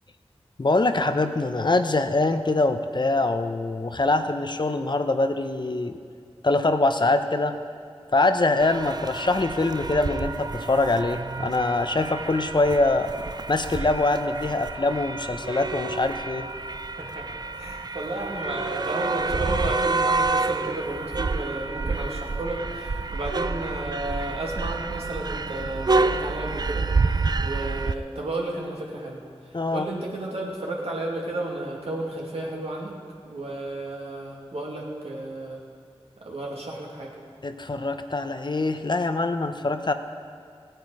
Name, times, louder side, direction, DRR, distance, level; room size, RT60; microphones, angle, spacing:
voice 1, 0.6-5.9 6.4-7.5 8.1-13.1 13.5-16.5 29.5-29.9 37.4-39.9, left 2 dB, 45° left, 8 dB, 0.8 m, -24 dB
sound 1, 8.6-28.0, right 3 dB, 40° right, 0.4 m, -28 dB
voice 2, 16.8-17.3 17.6-26.9 27.4-33.0 33.3-35.6 36.2-37.1, right 2 dB, 75° right, -2 dB, 2.4 m, -32 dB
16.0 x 9.1 x 4.9 m, 2.2 s
cardioid pair, 40°, 10 cm